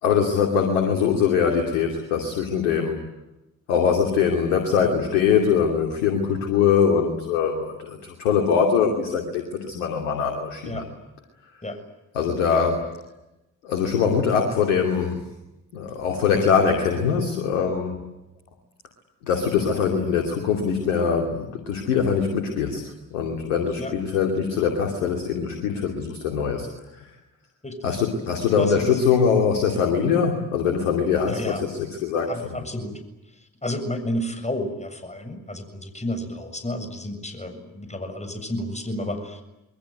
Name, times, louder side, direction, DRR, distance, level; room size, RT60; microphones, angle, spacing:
voice 1, 0.0-3.0 3.7-10.8 12.1-12.8 13.6-15.2 15.7-17.9 19.3-22.8 23.1-26.7 27.0-27.1 27.8-32.6, left 6 dB, 85° left, 3 dB, 2.7 m, -22 dB
voice 2, 28.6-29.0 31.3-31.6 32.3-33.0 33.6-39.4, left 1 dB, 15° left, 7 dB, 7.2 m, -31 dB
27.5 x 22.5 x 9.5 m, 0.95 s
hypercardioid pair, 40°, 40 cm